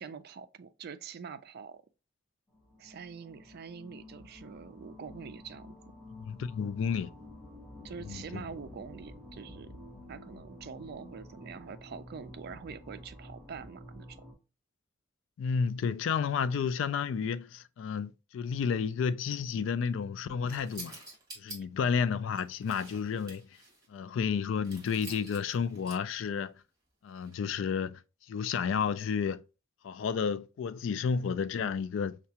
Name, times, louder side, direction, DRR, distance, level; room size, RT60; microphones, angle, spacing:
voice 1, 0.0-1.8 2.8-5.8 7.8-9.8 10.1-14.2, right 6 dB, 55° right, 0.4 m, -45 dB
sound 1, 2.5-14.3, left 1 dB, 5° left, 1.0 m, -50 dB
voice 2, 6.2-7.1 8.0-8.4 15.4-21.0 21.4-23.5 23.9-26.5 27.0-28.0 28.3-29.4 29.8-32.2, left 6 dB, 70° left, 0.3 m, -31 dB
sound 2, 20.5-21.6 22.3-23.9 24.6-26.2 27.1-27.3, right 2 dB, 20° right, 1.7 m, -48 dB
5.6 x 2.3 x 2.8 m
head